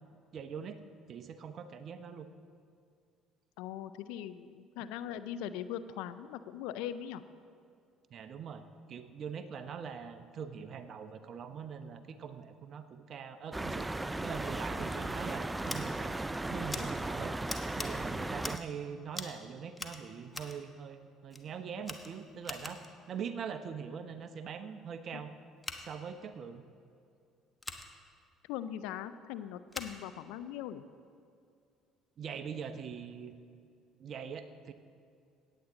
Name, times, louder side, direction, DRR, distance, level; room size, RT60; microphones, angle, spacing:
voice 1, 0.3-2.3 8.1-8.6 8.9-13.9 14.2-17.3 17.7-25.3 25.8-26.6 32.2-33.3 34.0-34.7, right 7 dB, 55° right, 10 dB, 0.8 m, -43 dB
voice 2, 3.6-7.2 25.1-25.2 28.5-30.8, left 10 dB, 75° left, 13 dB, 0.4 m, -40 dB
sound 1, 13.5-18.6, right 2 dB, 15° right, 0.4 m, -36 dB
Scissors, 15.6-15.8 16.7-16.8 17.5-17.9 18.4-18.7 19.1-19.4 19.7-20.6 21.3-21.4 21.8-22.9 25.6-25.8 27.6-27.9 29.7-29.9, left 2 dB, 15° left, 1.2 m, -42 dB
17.0 x 8.6 x 3.9 m, 2.4 s
hypercardioid pair, 60°, 0 cm